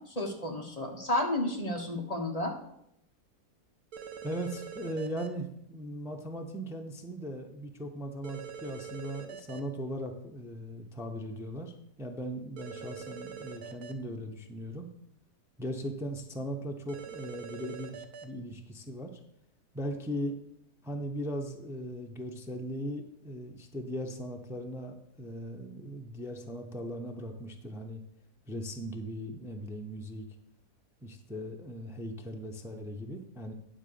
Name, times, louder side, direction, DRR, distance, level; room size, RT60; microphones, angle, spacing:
voice 1, 0.1-2.5, left 1 dB, 25° left, 1 dB, 1.2 m, -32 dB
sound 1, 3.9-5.3 8.2-9.6 12.6-13.9 16.9-18.2, right 7 dB, 70° right, 1.3 m, -43 dB
voice 2, 4.2-11.7 12.0-14.9 15.6-19.2 19.7-20.4 20.8-28.0 28.5-30.3 31.0-33.5, equal, 5° right, 3 dB, 0.4 m, -38 dB
10.0 x 3.8 x 6.8 m, 0.76 s
omnidirectional pair, 1.7 m